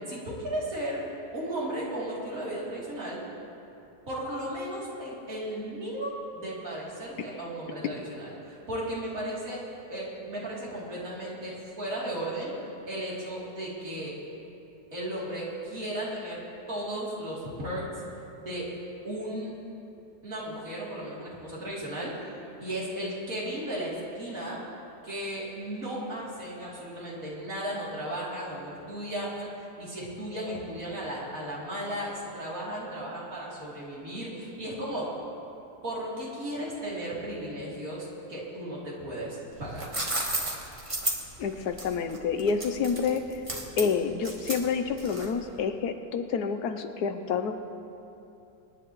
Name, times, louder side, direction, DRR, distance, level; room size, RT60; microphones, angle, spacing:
voice 1, 0.1-1.0 1.3-3.2 4.1-9.6 9.9-12.5 12.9-14.1 14.9-16.4 16.7-17.9 18.4-18.7 19.0-19.5 20.2-22.1 22.6-24.6 25.0-29.5 29.8-35.1 35.8-39.9, right 1 dB, 55° right, -7 dB, 3.6 m, -35 dB
sound 1, 39.5-45.5, right 2 dB, 20° right, 1.3 m, -33 dB
voice 2, 41.4-43.4 43.8-47.5, left 6 dB, 75° left, 8 dB, 1.2 m, -28 dB
26.0 x 10.0 x 3.1 m, 2.8 s
omnidirectional pair, 1.8 m